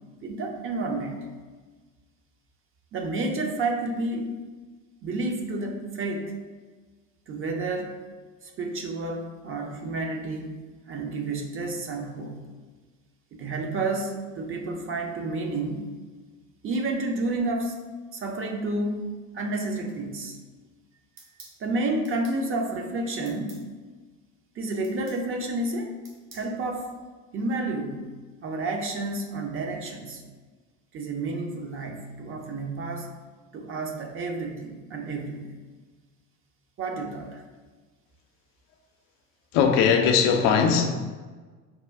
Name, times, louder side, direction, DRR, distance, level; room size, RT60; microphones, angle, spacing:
voice 1, 0.2-1.3 2.9-4.4 5.0-6.3 7.3-7.9 8.4-10.6 10.9-12.4 13.3-15.9 16.6-17.8 18.1-19.0 19.3-20.4 21.6-23.6 24.6-25.9 26.3-26.9 27.3-28.1 28.4-30.2 30.9-33.1 33.5-35.5 36.8-37.4, right 2 dB, 30° right, 2 dB, 0.6 m, -30 dB
sound 1, 21.2-21.6 22.0-22.4 23.3-23.6 24.8-25.2 26.0-26.5, right 3 dB, 50° right, 1.2 m, -49 dB
voice 2, 39.5-41.0, left 6 dB, 55° left, 5 dB, 0.5 m, -20 dB
4.2 x 2.2 x 3.5 m, 1.4 s
hypercardioid pair, 65°, 41 cm